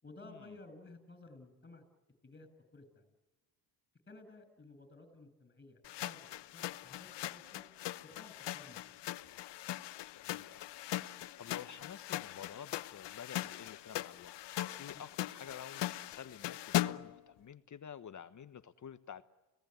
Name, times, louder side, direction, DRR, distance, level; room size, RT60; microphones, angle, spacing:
voice 1, 0.0-1.8 2.2-3.1 4.1-7.6 8.0-8.8 14.9-15.0, left 2 dB, 20° left, 11 dB, 7.8 m, -55 dB
sound 1, 5.8-17.2, left 14 dB, 55° left, 1.0 m, -40 dB
voice 2, 10.1-14.4 14.8-19.2, left 8 dB, 35° left, 12 dB, 1.2 m, -50 dB
30.0 x 19.0 x 9.5 m, 1.1 s
supercardioid pair, 75°, 50 cm